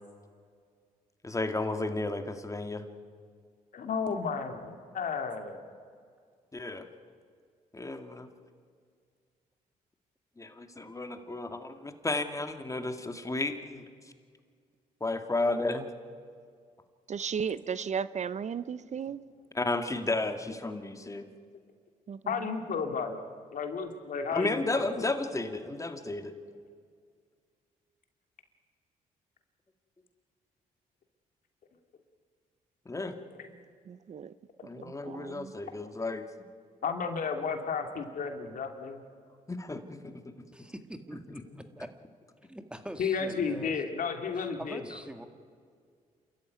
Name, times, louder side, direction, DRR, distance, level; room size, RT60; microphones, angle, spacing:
voice 1, 1.2-2.8 6.5-6.9 7.7-8.3 10.4-13.9 15.0-15.9 19.5-21.3 24.3-26.3 32.9-33.2 34.6-36.3 39.5-40.3, left 2 dB, 20° left, 2.2 m, -33 dB
voice 2, 3.7-5.6 15.5-15.6 22.3-23.2 23.5-25.1 26.5-26.6 33.3-33.5 36.8-39.0 43.0-44.8, left 5 dB, 65° left, 2.7 m, -33 dB
voice 3, 15.4-15.8 17.1-19.2 22.1-22.5 33.9-34.3 34.8-35.5, right 7 dB, 50° right, 0.7 m, -36 dB
voice 4, 40.5-41.9 42.5-43.7 44.3-45.3, right 1 dB, 5° right, 2.0 m, -43 dB
28.5 x 14.0 x 9.6 m
supercardioid pair, 70°, 15 cm